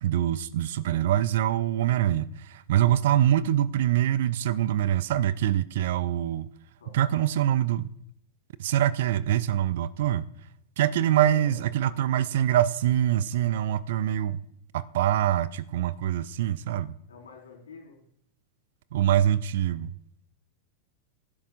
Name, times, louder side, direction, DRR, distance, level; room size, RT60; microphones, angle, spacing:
voice 1, 0.0-6.5 6.9-7.9 8.6-10.3 10.8-14.4 14.7-16.9 18.9-19.9, right 11 dB, 55° right, 0.5 m, -24 dB
voice 2, 6.8-7.3 11.0-12.2 17.1-18.0, left 5 dB, 70° left, 4.3 m, -48 dB
18.5 x 11.0 x 2.4 m
figure-of-eight pair, 90°, 0 cm